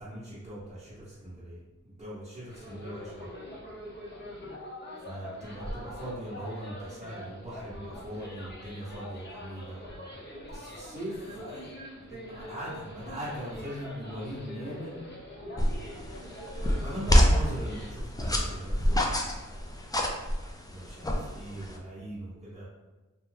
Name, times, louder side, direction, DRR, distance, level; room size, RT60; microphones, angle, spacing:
voice 1, 0.0-3.3 5.0-10.1 10.5-14.9 16.8-19.8 20.7-22.6, equal, 20° right, -11 dB, 0.8 m, -40 dB
sound 1, 2.5-17.9, left 1 dB, 35° left, 0.7 m, -44 dB
sound 2, 15.6-21.8, equal, 15° left, 0.3 m, -27 dB
2.7 x 2.2 x 3.2 m, 1.2 s
wide cardioid pair, 70°, 31 cm